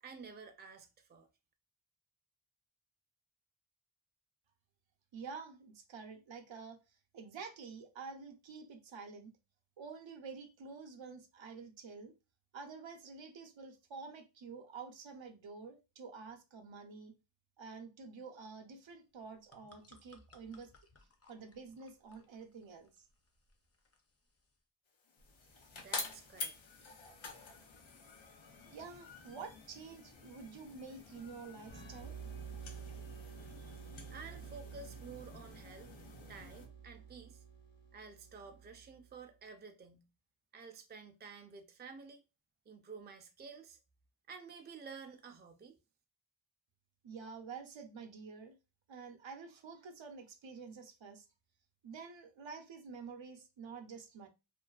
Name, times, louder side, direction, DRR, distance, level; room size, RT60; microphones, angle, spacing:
voice 1, 0.0-1.3 25.7-26.6 33.4-35.9 36.3-37.4 37.9-40.1 40.5-42.2 42.7-43.8 44.3-45.8, right 5 dB, 25° right, 0.3 m, -52 dB
voice 2, 5.1-6.8 7.1-9.3 9.8-12.1 12.5-17.2 17.6-20.7 21.3-23.1 28.7-32.2 47.0-48.6 48.9-51.3 51.8-54.3, right 5 dB, 75° right, 0.6 m, -49 dB
sound 1, 19.1-24.6, left 2 dB, 35° left, 0.5 m, -65 dB
sound 2, 25.0-36.7, left 4 dB, 85° left, 0.6 m, -49 dB
sound 3, 31.6-39.2, right 7 dB, 70° left, 1.1 m, -50 dB
2.5 x 2.3 x 2.3 m
wide cardioid pair, 75°, 45 cm